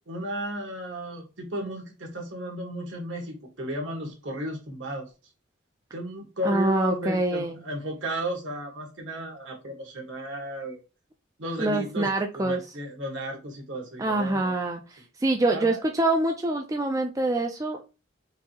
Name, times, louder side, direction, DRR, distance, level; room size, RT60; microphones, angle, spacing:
voice 1, 0.1-5.1 5.9-10.8 11.4-14.6 15.5-15.9, right 1 dB, 70° right, 2 dB, 1.4 m, -34 dB
voice 2, 6.4-7.6 11.6-12.6 14.0-17.8, right 2 dB, 15° right, 3 dB, 0.3 m, -25 dB
4.7 x 2.7 x 2.8 m, 0.30 s
head